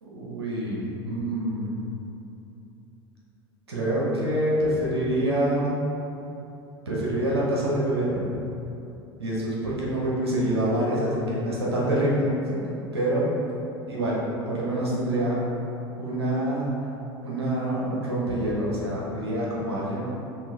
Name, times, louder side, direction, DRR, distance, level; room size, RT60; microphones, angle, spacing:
voice 1, 0.0-1.7 3.7-5.7 6.9-8.3 9.2-13.3 13.9-14.2 14.5-15.4 16.0-16.7 17.2-20.0, right 1 dB, 80° right, -5 dB, 0.9 m, -26 dB
5.6 x 2.6 x 2.6 m, 2.8 s
figure-of-eight pair, 75°, 13 cm